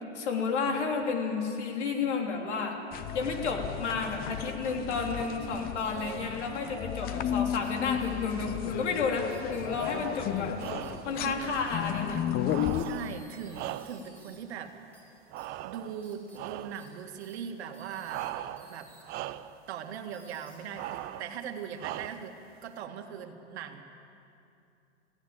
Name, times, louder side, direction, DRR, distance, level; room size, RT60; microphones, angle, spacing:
voice 1, 0.1-2.8 3.1-10.6 11.1-12.2, left 4 dB, 75° left, 2 dB, 3.4 m, -31 dB
sound 1, 2.9-12.8, left 10 dB, 25° left, 0.7 m, -34 dB
sound 2, 5.8-6.1 7.6-8.1 9.3-9.6 10.6-10.9 12.5-14.4 14.9-15.0 15.4-15.5 16.0-16.4 16.7-16.9 17.2-17.3 17.7-18.3 18.6-19.0 20.1-21.0 21.9-22.2, right 2 dB, 5° left, 5.8 m, -57 dB
voice 2, 5.9-6.4 11.2-11.6 12.8-14.7 15.0-15.1 15.6-18.3 18.7-18.9 19.7-22.4 22.6-23.8, right 8 dB, 65° right, 5 dB, 2.0 m, -40 dB
sound 3, 9.7-10.2 10.6-11.2 12.4-14.2 15.3-16.0 16.3-16.9 18.0-18.8 19.0-19.6 20.7-21.3 21.8-22.4, right 14 dB, 30° right, 0.6 m, -39 dB
20.0 x 16.0 x 8.8 m, 2.6 s
hypercardioid pair, 125°, 35 cm